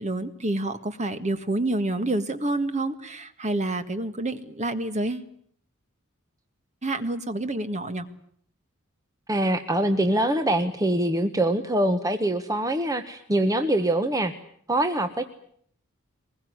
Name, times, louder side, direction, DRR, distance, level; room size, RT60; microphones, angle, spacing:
voice 1, 0.0-5.3 6.8-8.1, right 2 dB, 35° right, 10 dB, 1.8 m, -28 dB
voice 2, 9.3-14.3 14.7-15.2, right 1 dB, 15° right, 7 dB, 1.2 m, -24 dB
23.0 x 21.0 x 9.7 m, 0.65 s
head